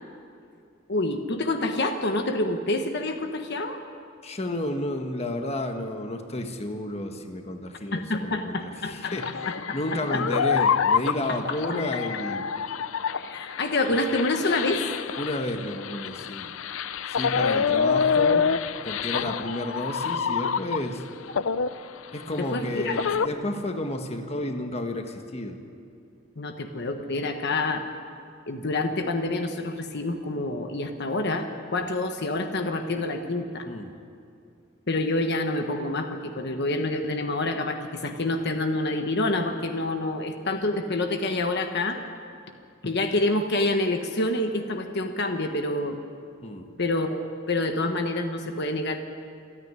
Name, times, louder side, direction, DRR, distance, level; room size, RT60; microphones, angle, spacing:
voice 1, 0.9-3.8 7.9-9.1 9.5-9.8 10.1-10.2 11.3-11.6 13.1-14.8 22.4-23.0 26.4-27.8 28.5-33.7 34.9-42.0 42.8-46.0 46.8-49.0, left 2 dB, 60° left, 5 dB, 1.3 m, -27 dB
voice 2, 4.2-9.3 9.7-12.5 15.2-16.5 17.1-18.5 18.8-21.0 22.1-25.6 33.6-34.0 46.4-46.7, left 1 dB, 30° left, 5 dB, 1.4 m, -31 dB
sound 1, 9.0-21.0 21.3-23.3, left 6 dB, 85° left, 0.6 m, -27 dB
27.5 x 9.8 x 9.6 m, 2.4 s
head